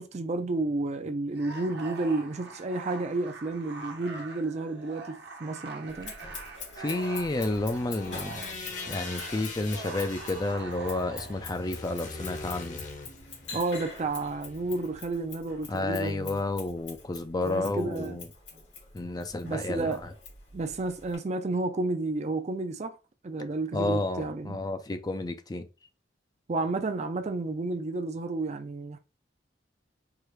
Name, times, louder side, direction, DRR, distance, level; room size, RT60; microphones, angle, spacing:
voice 1, 0.0-6.1 13.5-16.4 17.4-18.2 19.4-20.0 20.5-23.0 23.2-24.6 26.5-29.0, right 2 dB, 40° right, 0.5 m, -31 dB
sound 1, 1.3-11.5, right 3 dB, 65° right, 0.9 m, -43 dB
Scissors, 5.9-21.2, left 5 dB, 85° left, 2.3 m, -45 dB
voice 2, 6.8-8.4 8.9-12.8 15.7-18.3 18.9-20.1 23.7-25.7, left 2 dB, 20° left, 0.4 m, -31 dB
sound 2, 7.0-15.0, left 3 dB, 45° left, 0.9 m, -43 dB
4.7 x 2.4 x 3.1 m
head